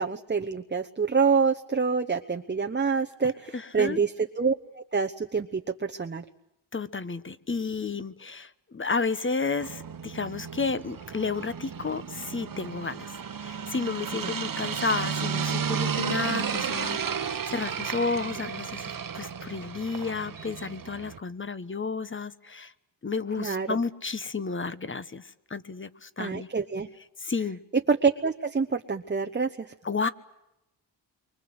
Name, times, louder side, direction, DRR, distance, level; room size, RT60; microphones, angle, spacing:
voice 1, 0.0-6.2 14.2-14.3 23.4-23.8 26.2-26.9 27.9-29.7, right 5 dB, 25° right, 4 dB, 1.0 m, -27 dB
voice 2, 3.5-4.0 6.7-22.7 23.0-26.5 27.2-27.6 29.8-30.1, left 4 dB, 25° left, 14 dB, 1.2 m, -32 dB
sound 1, 9.6-21.2, right 7 dB, 45° right, 1.2 m, -33 dB
29.0 x 24.5 x 7.9 m, 0.90 s
cardioid pair, 90°, 45 cm